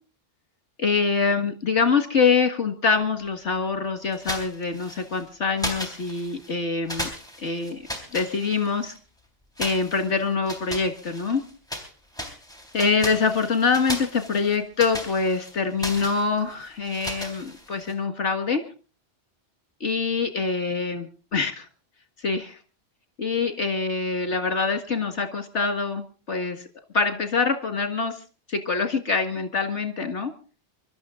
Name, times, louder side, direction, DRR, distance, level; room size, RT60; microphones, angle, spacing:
voice 1, 0.8-7.1 7.4-7.8 8.1-8.9 9.6-11.4 12.7-18.6 19.8-21.7 22.2-22.6 23.2-26.6 26.9-28.2 28.5-30.3, left 4 dB, 75° left, 8 dB, 2.2 m, -25 dB
sound 1, 4.1-5.2 5.6-6.5 6.9-9.0 9.6-11.9 12.1-17.9, left 1 dB, 5° left, 3.6 m, -36 dB
24.5 x 12.5 x 3.8 m, 0.36 s
omnidirectional pair, 1.2 m